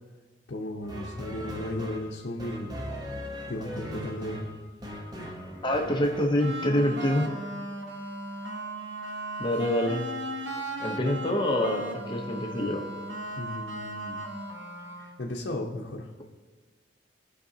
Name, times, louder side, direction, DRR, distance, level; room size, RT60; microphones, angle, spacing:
voice 1, 0.5-2.8 3.5-4.4 5.2-5.3 13.3-14.2 15.0-16.1, left 1 dB, 65° left, -2 dB, 0.8 m, -35 dB
sound 1, 0.8-6.2, left 1 dB, 20° right, 0.9 m, -39 dB
voice 2, 5.6-7.4 9.4-10.0 10.8-12.8, left 1 dB, 25° left, 2 dB, 0.8 m, -26 dB
sound 2, 6.4-15.2, right 1 dB, 80° right, 1.1 m, -36 dB
16.5 x 5.7 x 2.8 m, 1.4 s
head